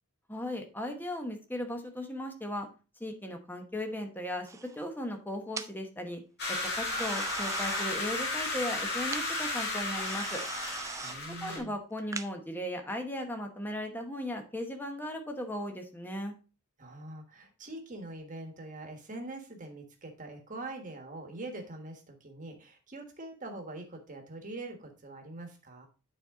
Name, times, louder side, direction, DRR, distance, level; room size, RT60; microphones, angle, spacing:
voice 1, 0.3-2.7 3.0-6.2 6.5-10.4 11.4-16.3, left 1 dB, 10° left, 4 dB, 1.1 m, -37 dB
sound 1, 4.5-4.8 5.6-5.7 6.9-7.9 9.1-9.2 10.0-11.2 12.0-12.3, right 4 dB, 15° right, 0.3 m, -39 dB
sound 2, 6.4-11.6, left 2 dB, 50° left, 2.3 m, -34 dB
voice 2, 11.0-11.8 16.8-25.9, right 2 dB, 35° right, 4 dB, 1.5 m, -43 dB
9.1 x 4.2 x 3.6 m, 0.34 s
head